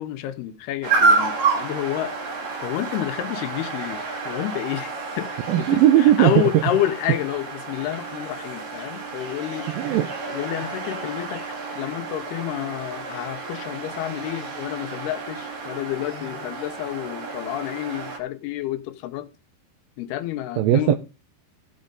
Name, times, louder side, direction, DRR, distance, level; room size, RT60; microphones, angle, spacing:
voice 1, 0.0-2.1 2.6-9.8 10.3-11.4 11.8-19.3 20.0-20.9, left 13 dB, 90° left, 2.8 m, -29 dB
sound 1, 0.8-18.2, right 3 dB, 50° right, 3.1 m, -29 dB
voice 2, 5.5-6.6 9.7-10.1 20.6-20.9, right 12 dB, 80° right, 2.2 m, -18 dB
14.5 x 6.4 x 3.9 m
omnidirectional pair, 4.5 m